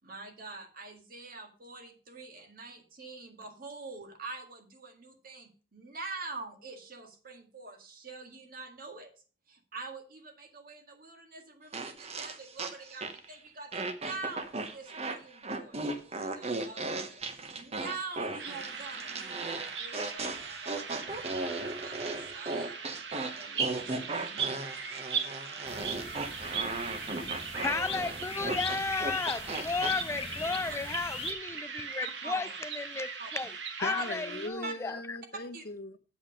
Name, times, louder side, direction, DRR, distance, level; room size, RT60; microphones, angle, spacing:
voice 1, 0.0-9.1 9.5-22.8 23.1-24.5 27.7-28.2 28.6-28.8 32.0-32.6 33.2-33.3 33.8-34.1 34.6-34.7 35.5-35.6, right 3 dB, 55° right, 1.8 m, -45 dB
sound 1, 11.7-13.3 13.7-30.0, right 2 dB, 35° right, 0.9 m, -37 dB
sound 2, 18.4-34.5, right 6 dB, 70° right, 1.4 m, -39 dB
sound 3, 25.7-31.3, left 5 dB, 35° left, 1.0 m, -40 dB
voice 2, 27.6-33.5 33.8-35.0, left 3 dB, 15° left, 0.3 m, -34 dB
voice 3, 33.8-36.0, left 2 dB, 60° left, 1.0 m, -38 dB
8.1 x 7.1 x 5.0 m
head